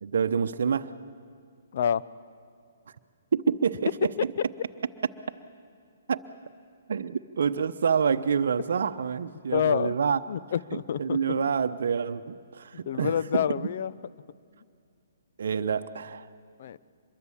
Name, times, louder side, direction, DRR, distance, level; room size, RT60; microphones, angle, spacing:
voice 1, 0.0-0.9 3.3-4.3 6.1-6.2 6.9-10.2 11.0-13.7 15.4-16.3, right 6 dB, 65° right, 8 dB, 0.8 m, -27 dB
voice 2, 1.7-2.0 9.5-10.0 10.3-11.2 12.9-13.9 16.6-16.8, left 8 dB, 55° left, 17 dB, 0.6 m, -27 dB
24.5 x 22.0 x 7.3 m, 2.2 s
figure-of-eight pair, 130°, 0 cm